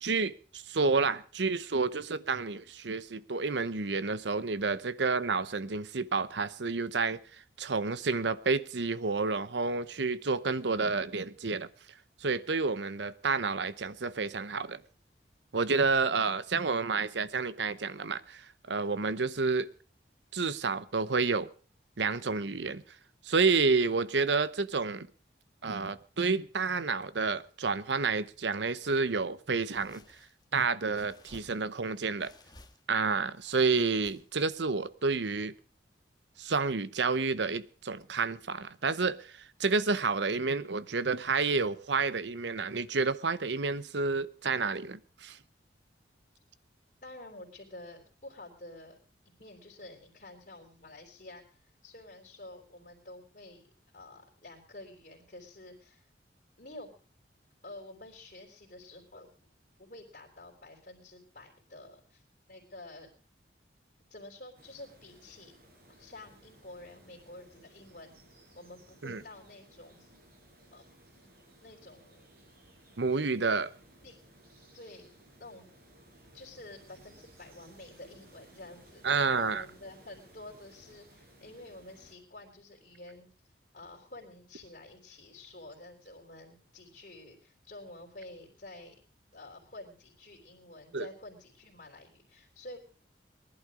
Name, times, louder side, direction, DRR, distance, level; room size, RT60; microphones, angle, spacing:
voice 1, 0.0-7.2 7.6-11.7 12.2-14.8 15.5-19.7 20.3-21.5 22.0-22.8 23.2-25.1 25.6-30.0 30.5-32.3 32.9-35.5 36.4-45.4 69.0-69.2 73.0-73.7 79.0-79.6 90.9-91.1, right 4 dB, 80° right, 0.8 m, -30 dB
sound 1, 28.8-29.1 29.6-30.5 30.9-31.8 32.2-32.9 33.4-34.5, left 2 dB, 25° left, 1.5 m, -57 dB
voice 2, 47.0-49.0 49.2-53.6 53.9-56.1 56.6-56.9 57.6-59.3 59.8-63.1 64.1-65.5 65.9-68.2 68.6-70.1 70.7-70.9 71.6-72.3 74.0-74.2 74.7-75.1 75.4-75.7 76.3-89.0 89.3-92.8, left 2 dB, 50° left, 3.6 m, -49 dB
sound 2, 64.6-82.2, right 1 dB, 55° right, 5.2 m, -59 dB
20.0 x 11.5 x 4.9 m
head